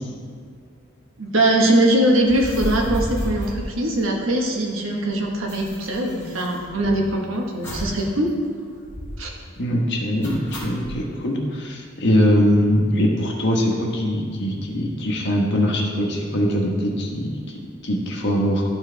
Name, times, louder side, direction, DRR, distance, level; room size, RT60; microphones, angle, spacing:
voice 1, 1.2-8.3 9.2-9.3, right 1 dB, 90° right, 0 dB, 1.2 m, -21 dB
sound 1, 2.2-4.5 4.7-4.8 5.0-7.1 7.6-8.1 8.3-8.4 8.8-9.3 10.2-10.9, equal, 10° left, 1.8 m, -32 dB
voice 2, 9.6-17.3 17.8-18.6, equal, 60° left, 0 dB, 1.3 m, -21 dB
12.5 x 4.5 x 3.4 m, 2.1 s
head